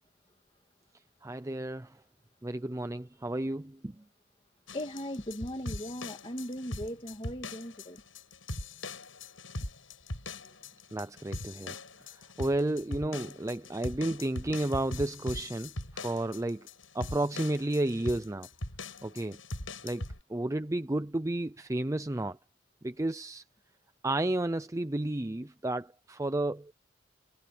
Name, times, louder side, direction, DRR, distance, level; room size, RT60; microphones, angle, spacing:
voice 1, 1.2-1.9 2.4-4.0 10.9-11.8 12.4-16.7 16.9-18.5 19.0-19.4 19.8-20.0 20.3-22.4 22.8-23.4 24.0-26.7, right 1 dB, 15° right, 0.5 m, -32 dB
sound 1, 4.7-20.2, left 2 dB, 85° left, 8.0 m, -41 dB
voice 2, 4.7-8.0, equal, 25° left, 2.3 m, -38 dB
head